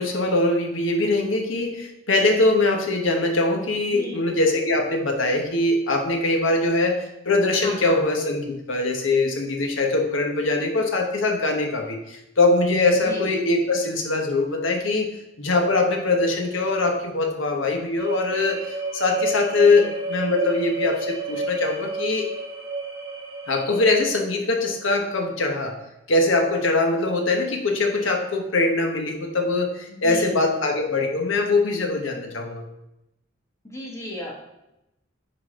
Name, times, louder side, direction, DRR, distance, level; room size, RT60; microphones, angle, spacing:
voice 1, 0.0-15.1 15.4-22.3 23.5-25.8 26.1-32.6, left 2 dB, 80° left, 3 dB, 1.2 m, -22 dB
voice 2, 3.8-4.4 7.6-8.0 12.9-13.3 19.6-19.9 29.9-30.6 33.7-34.3, left 1 dB, 15° left, -2 dB, 1.4 m, -35 dB
sound 1, 18.0-24.0, right 2 dB, 20° right, 1.6 m, -30 dB
10.0 x 4.0 x 3.8 m, 0.89 s
head